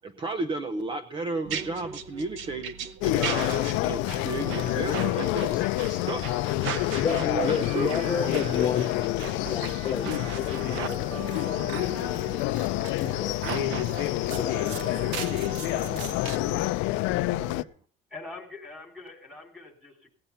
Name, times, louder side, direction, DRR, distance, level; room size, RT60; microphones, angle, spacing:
voice 1, 0.0-2.7 3.0-6.8 7.1-7.9 13.4-14.1 15.5-16.8 17.2-17.7, right 3 dB, 25° right, 11 dB, 0.8 m, -35 dB
sound 1, 1.4-16.4, right 7 dB, 75° right, 1.1 m, -38 dB
sound 2, 3.0-17.6, left 18 dB, 75° left, 0.5 m, -28 dB
voice 2, 6.9-10.1 10.3-11.8 12.5-13.6 14.4-15.4, left 7 dB, 25° left, 3 dB, 0.9 m, -32 dB
voice 3, 18.1-20.1, left 3 dB, 5° right, -1 dB, 3.1 m, -43 dB
16.5 x 9.7 x 5.7 m, 0.42 s
cardioid pair, 160°, 20 cm